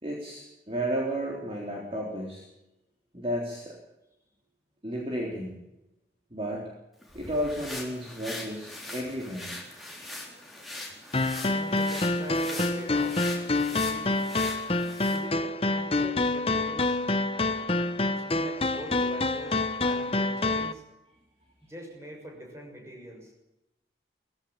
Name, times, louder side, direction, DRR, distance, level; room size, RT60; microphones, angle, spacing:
voice 1, 0.0-2.5 3.1-3.8 4.8-5.6 6.3-6.6 7.1-9.6, equal, 30° right, -2 dB, 3.8 m, -32 dB
sound 1, 7.0-15.2, left 1 dB, ahead, 4.1 m, -41 dB
sound 2, 11.1-20.7, left 2 dB, 30° left, 1.0 m, -27 dB
voice 2, 11.4-13.2 13.6-14.1 15.1-16.9 18.0-20.8 21.6-23.3, equal, 15° right, 1 dB, 6.4 m, -43 dB
19.0 x 16.0 x 8.9 m, 0.90 s
head